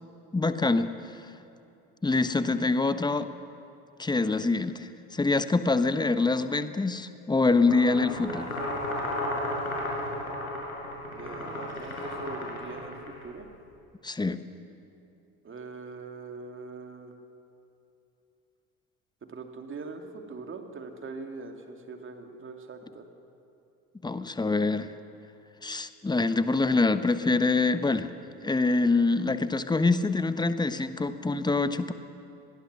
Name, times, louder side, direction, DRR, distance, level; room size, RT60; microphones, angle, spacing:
voice 1, 0.3-0.9 2.0-3.3 4.0-8.5 14.0-14.4 24.0-24.9 25.6-28.1 28.4-31.9, left 3 dB, 10° left, 12 dB, 1.1 m, -25 dB
sound 1, 7.5-13.2, left 1 dB, 85° left, 5.3 m, -33 dB
voice 2, 11.1-13.0 13.2-13.5 15.4-17.1 19.3-23.0, right 4 dB, 30° right, 4 dB, 2.8 m, -42 dB
26.5 x 20.0 x 6.4 m, 2.8 s
figure-of-eight pair, 60°, 42 cm